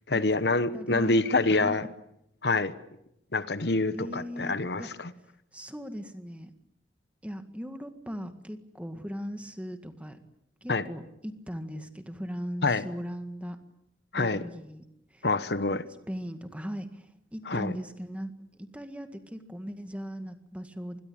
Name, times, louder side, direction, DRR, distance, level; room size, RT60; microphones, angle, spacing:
voice 1, 0.1-1.9 2.4-2.7 3.3-5.1 10.7-10.9 12.6-12.9 14.1-14.4 15.2-15.9 17.4-17.8, left 3 dB, 65° left, 13 dB, 1.1 m, -26 dB
voice 2, 0.7-1.1 1.5-1.8 3.9-4.9 5.5-6.5 7.2-10.2 10.6-13.6 14.1-14.8 15.1-15.3 16.1-21.0, equal, 5° right, 8 dB, 1.8 m, -38 dB
27.0 x 21.5 x 8.7 m, 0.81 s
head